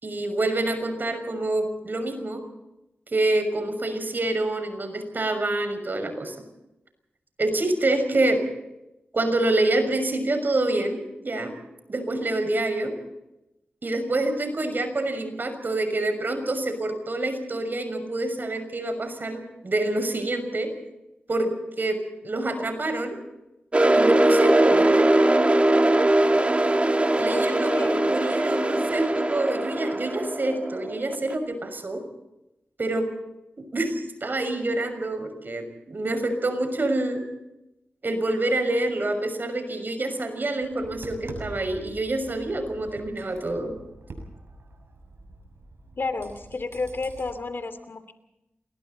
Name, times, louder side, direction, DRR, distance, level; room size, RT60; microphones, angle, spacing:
voice 1, 0.0-2.4 3.1-6.4 7.4-8.4 9.1-11.5 11.9-12.9 13.8-20.7 21.3-22.0 22.2-23.2 23.9-25.2 27.2-32.0 32.8-33.1 33.6-37.2 38.0-43.7, right 2 dB, 55° right, 7 dB, 6.2 m, -27 dB
sound 1, 23.7-31.3, right 1 dB, 30° right, 2.1 m, -21 dB
voice 2, 27.3-28.1 28.5-28.8 46.0-48.1, left 3 dB, 65° left, 10 dB, 2.8 m, -32 dB
Tap, 40.6-47.3, right 2 dB, 85° right, 6.5 m, -44 dB
28.0 x 22.0 x 4.2 m, 0.91 s
cardioid pair, 55°, 4 cm